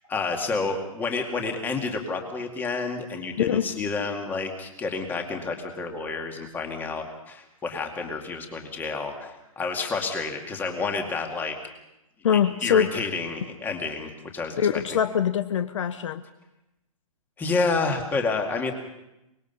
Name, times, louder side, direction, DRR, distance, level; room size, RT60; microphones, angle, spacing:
voice 1, 0.1-11.6 12.3-14.8 17.4-18.7, left 4 dB, 10° left, 3 dB, 2.2 m, -29 dB
voice 2, 3.4-3.7 12.2-13.1 14.6-16.2, left 8 dB, 55° left, 11 dB, 1.0 m, -23 dB
24.5 x 21.0 x 5.5 m, 0.91 s
hypercardioid pair, 155°, 19 cm